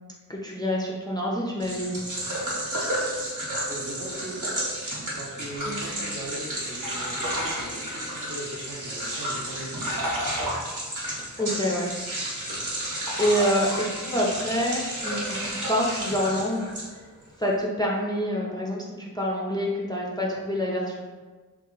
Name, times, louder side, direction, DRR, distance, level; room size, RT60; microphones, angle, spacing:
voice 1, 0.3-2.0 5.7-5.9 11.1-11.9 13.2-16.7 17.4-21.1, equal, 15° left, -3 dB, 0.4 m, -27 dB
sound 1, 1.6-17.2, right 1 dB, 65° right, 1.1 m, -33 dB
voice 2, 3.7-4.5 5.1-10.2, right 1 dB, 50° right, -4 dB, 0.8 m, -39 dB
sound 2, 5.6-8.5 8.9-12.0 12.4-14.0 14.5-16.4, equal, 90° right, 0.8 m, -33 dB
2.8 x 2.3 x 3.7 m, 1.4 s
wide cardioid pair, 70°, 33 cm